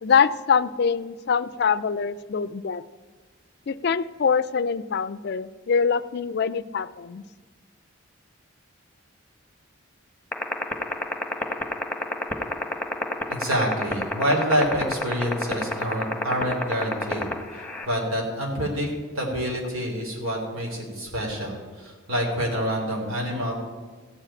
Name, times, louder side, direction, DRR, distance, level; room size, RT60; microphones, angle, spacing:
voice 1, 0.0-2.8 3.7-7.2, left 6 dB, 50° left, 16 dB, 0.4 m, -24 dB
sound 1, 10.3-17.9, left 2 dB, 10° left, 1.1 m, -25 dB
voice 2, 13.3-18.9 19.1-23.5, equal, 85° right, 0 dB, 3.1 m, -27 dB
14.5 x 5.0 x 8.7 m, 1.4 s
head